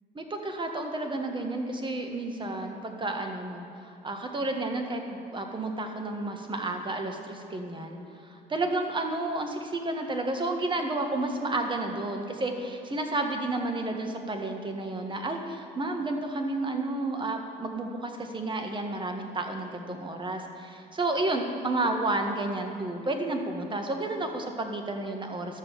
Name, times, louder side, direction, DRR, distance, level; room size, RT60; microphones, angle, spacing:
voice 1, 0.1-3.6 4.0-8.0 8.3-25.6, right 2 dB, 25° right, 4 dB, 1.6 m, -31 dB
12.5 x 7.2 x 7.1 m, 3.0 s
cardioid pair, 90°, 18 cm